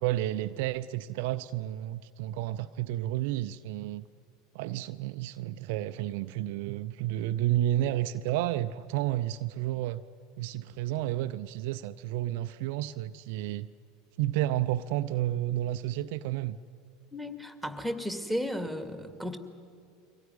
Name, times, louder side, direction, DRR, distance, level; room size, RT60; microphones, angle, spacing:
voice 1, 0.0-4.1 4.5-10.0 10.4-13.7 14.2-16.6, right 14 dB, 60° right, 11 dB, 0.5 m, -31 dB
voice 2, 17.1-19.4, equal, ahead, 8 dB, 2.3 m, -34 dB
24.0 x 17.0 x 9.6 m, 2.3 s
figure-of-eight pair, 75°, 0 cm